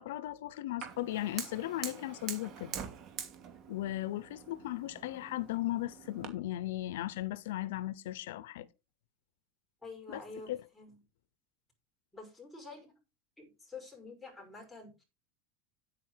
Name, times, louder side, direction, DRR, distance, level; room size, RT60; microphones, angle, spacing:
voice 1, 0.0-2.7 3.7-8.7 10.1-10.6, left 15 dB, 85° left, 0.8 m, -37 dB
Fire, 0.8-6.3, right 8 dB, 40° right, 2.5 m, -45 dB
voice 2, 9.8-11.0 12.1-12.9 13.4-15.0, left 3 dB, 5° left, 5.5 m, -48 dB
9.7 x 9.0 x 4.6 m
supercardioid pair, 155°, 0 cm